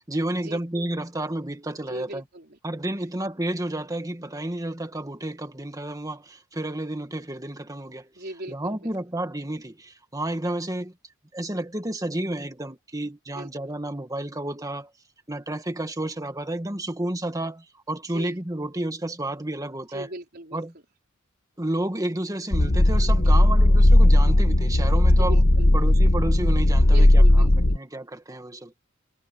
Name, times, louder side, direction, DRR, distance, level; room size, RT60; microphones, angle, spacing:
voice 1, 0.1-2.2 2.6-8.1 8.5-10.9 11.3-14.9 15.3-20.1 20.5-20.7 21.6-25.4 25.7-28.7, right 1 dB, 15° right, 1.8 m, -31 dB
voice 2, 1.9-2.6 8.1-8.8 13.3-13.5 18.1-18.3 19.9-20.6 25.2-25.7 26.8-27.5, right 1 dB, 50° right, 4.5 m, -38 dB
sound 1, 22.5-27.8, left 1 dB, 55° left, 1.3 m, -17 dB
head